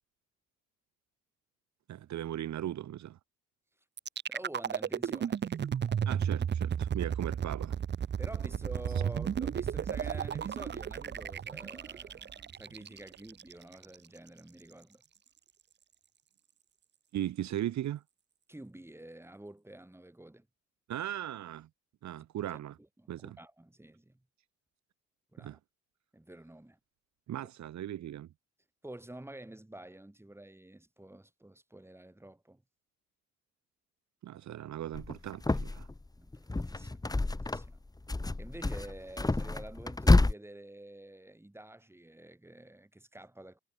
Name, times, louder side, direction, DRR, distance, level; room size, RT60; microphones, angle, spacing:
voice 1, 1.9-3.2 6.1-7.7 17.1-18.0 20.9-21.7 22.0-22.7 23.1-23.4 25.4-25.6 27.3-28.3 34.2-35.9, right 12 dB, 65° right, 1.3 m, -38 dB
sound 1, 4.0-14.0, right 8 dB, 35° right, 0.7 m, -33 dB
voice 2, 4.3-5.6 8.2-15.0 18.5-20.5 22.8-24.2 25.3-25.6 26.1-26.8 27.4-27.5 28.8-32.6 36.2-37.8 38.4-43.6, right 1 dB, 10° right, 5.8 m, -49 dB
sound 2, 34.9-36.0 36.3-37.8 38.1-40.3, left 2 dB, 10° left, 1.4 m, -28 dB
cardioid pair, 90°, 30 cm